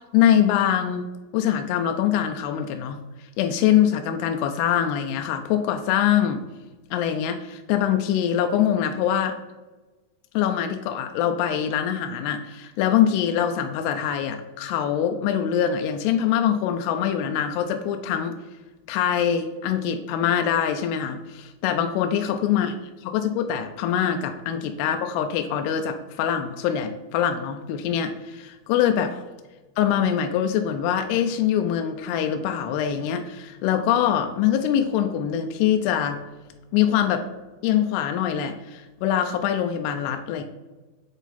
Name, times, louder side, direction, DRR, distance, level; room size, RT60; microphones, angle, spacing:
voice 1, 0.1-1.1 1.3-3.0 3.4-6.4 6.9-9.4 10.3-18.4 18.9-22.7 23.0-29.3 29.8-36.2 36.7-37.2 37.6-40.4, left 9 dB, 85° left, 6 dB, 2.6 m, -23 dB
8.1 x 4.0 x 4.1 m, 1.2 s
omnidirectional pair, 4.7 m